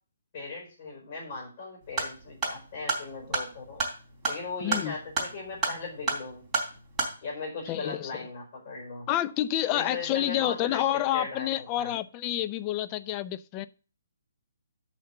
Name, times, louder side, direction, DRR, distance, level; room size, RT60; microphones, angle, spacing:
voice 1, 0.3-3.8 4.3-6.4 7.2-9.1 9.7-10.9 11.1-11.9, left 3 dB, 40° left, -1 dB, 4.6 m, -38 dB
sound 1, 1.8-7.2, right 3 dB, 15° right, 3.5 m, -32 dB
voice 2, 4.6-4.9 7.7-8.1 9.1-13.7, left 13 dB, 25° left, 12 dB, 0.5 m, -28 dB
6.5 x 5.9 x 6.8 m, 0.36 s
figure-of-eight pair, 140°, 0 cm